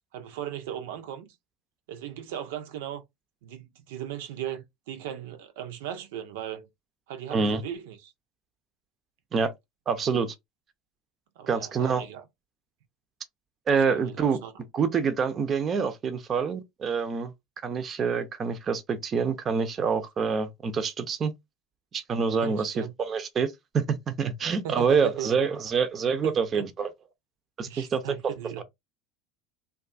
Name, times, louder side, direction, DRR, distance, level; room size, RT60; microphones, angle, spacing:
voice 1, 0.1-1.3 1.9-3.0 3.4-6.7 7.1-8.1 11.4-12.2 13.9-14.5 22.4-22.9 24.6-25.3 26.2-26.6 27.6-28.6, right 10 dB, 80° right, 0.6 m, -37 dB
voice 2, 7.3-7.6 9.3-9.5 9.9-10.3 11.5-12.0 13.7-14.4 14.7-17.3 17.6-21.3 21.9-26.9 27.6-28.0 28.6-28.7, right 5 dB, 35° right, 0.5 m, -26 dB
2.6 x 2.3 x 2.5 m
hypercardioid pair, 95°, 0 cm